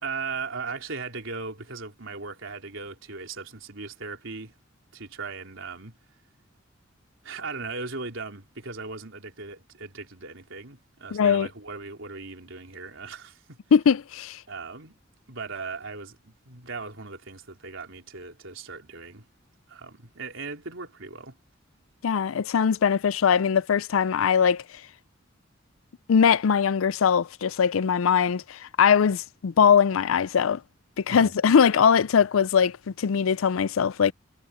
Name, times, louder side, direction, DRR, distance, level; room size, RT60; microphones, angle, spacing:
voice 1, 0.0-4.5 4.9-6.0 7.2-13.6 14.5-15.0 15.3-19.3 19.7-21.4 31.1-31.4, right 4 dB, 75° right, 3.7 m, -38 dB
voice 2, 11.1-11.5 13.7-14.4 22.0-24.6 26.1-30.6 31.0-34.1, left 7 dB, 90° left, 0.4 m, -21 dB
head